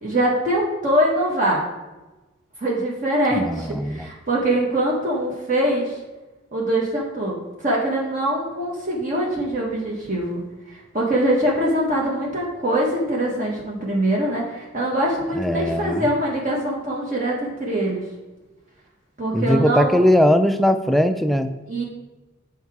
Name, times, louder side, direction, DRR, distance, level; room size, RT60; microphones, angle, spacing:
voice 1, 0.0-1.6 2.6-6.0 6.5-10.4 10.7-18.0 19.2-20.0 21.7-21.8, right 1 dB, 40° right, -3 dB, 1.2 m, -23 dB
voice 2, 3.4-4.1 15.3-16.0 19.3-21.5, left 1 dB, ahead, 8 dB, 0.3 m, -19 dB
8.0 x 4.8 x 4.7 m, 1.1 s
head